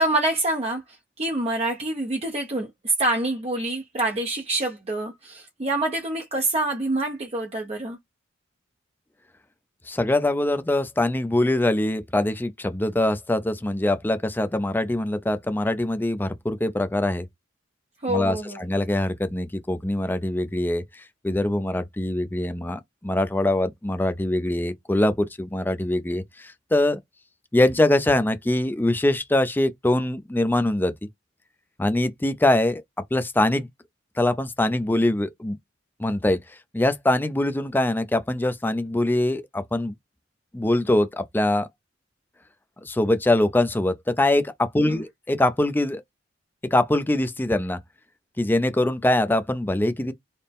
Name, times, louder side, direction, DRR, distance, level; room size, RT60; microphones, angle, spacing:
voice 1, 0.0-8.0 18.0-18.6 44.9-45.0, right 2 dB, 30° right, 0.6 m, -26 dB
voice 2, 9.9-17.3 18.1-27.0 27.5-30.9 31.8-32.8 33.1-33.7 34.2-35.6 36.0-36.4 36.7-39.9 40.5-41.7 42.8-46.0 46.7-47.8 48.4-50.1, left 1 dB, 10° left, 0.4 m, -23 dB
4.1 x 2.1 x 3.4 m
head